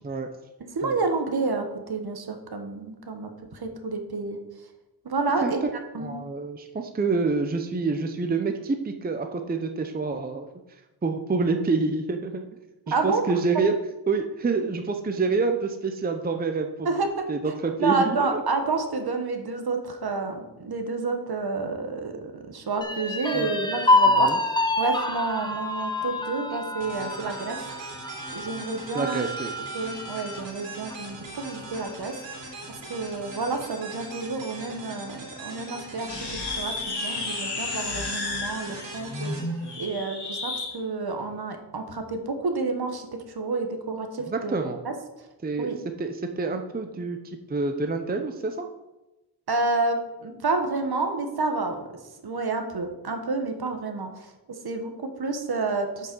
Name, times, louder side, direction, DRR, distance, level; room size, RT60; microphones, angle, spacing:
voice 1, 0.7-4.4 5.0-5.6 5.9-6.2 12.9-13.2 16.8-27.6 28.3-29.2 29.7-32.2 32.9-36.3 36.6-39.3 39.8-44.6 44.8-44.9 45.6-45.8 49.5-51.9 52.2-54.3 54.6-56.1, right 3 dB, 60° right, 5 dB, 1.3 m, -29 dB
voice 2, 6.0-10.5 11.0-12.4 12.9-13.7 14.1-16.9 17.3-18.4 23.3-23.5 24.1-24.4 28.9-29.5 39.6-39.8 44.3-44.8 45.4-48.7, right 4 dB, 20° right, 5 dB, 0.6 m, -27 dB
sound 1, 22.8-30.5 30.9-31.0 31.4-32.1, left 2 dB, 10° left, 0.9 m, -27 dB
sound 2, 26.8-40.5, right 2 dB, 90° right, 2.8 m, -41 dB
sound 3, 36.0-40.8, left 2 dB, 65° left, 1.9 m, -32 dB
8.9 x 5.5 x 6.1 m, 1.0 s
wide cardioid pair, 140°, 43 cm